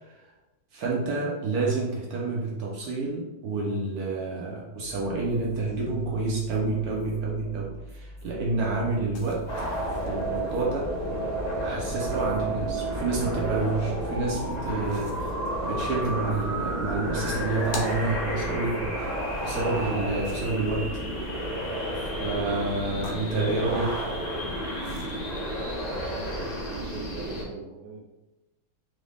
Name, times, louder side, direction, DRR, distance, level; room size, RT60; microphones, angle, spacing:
voice 1, 0.7-9.5 9.9-10.9 11.6-21.0 22.0-24.1, right 3 dB, 65° right, -3 dB, 1.0 m, -29 dB
sound 1, 4.8-21.3, left 1 dB, 5° left, 0.3 m, -44 dB
sound 2, 8.7-26.8, equal, 70° left, 1.3 m, -46 dB
sound 3, 9.4-27.4, right 1 dB, 50° left, 1.2 m, -31 dB
voice 2, 25.6-28.1, right 4 dB, 85° right, -1 dB, 1.4 m, -43 dB
3.9 x 2.6 x 3.4 m, 1.0 s
omnidirectional pair, 2.2 m